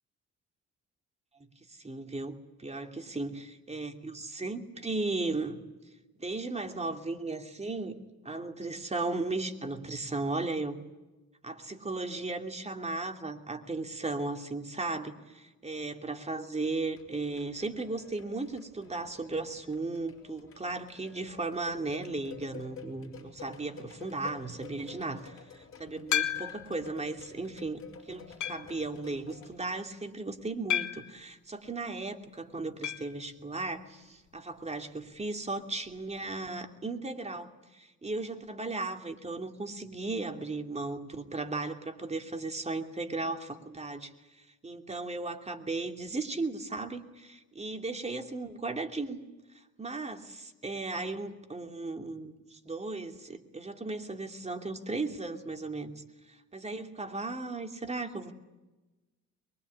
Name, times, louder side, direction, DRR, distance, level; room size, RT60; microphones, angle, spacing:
voice 1, 1.7-5.6 6.2-10.8 11.4-44.1 44.6-49.2 49.8-58.3, right 3 dB, 20° right, 5 dB, 2.8 m, -36 dB
sound 1, 16.9-29.6, left 6 dB, 45° left, 6.2 m, -50 dB
sound 2, 26.1-26.8 27.4-27.5 28.4-28.8 30.7-31.2 32.8-33.1 33.4-33.5 33.7-33.8 35.9-36.0, left 11 dB, 75° left, 1.9 m, -32 dB
23.5 x 22.5 x 9.8 m, 1.1 s
cardioid pair, 90°, 30 cm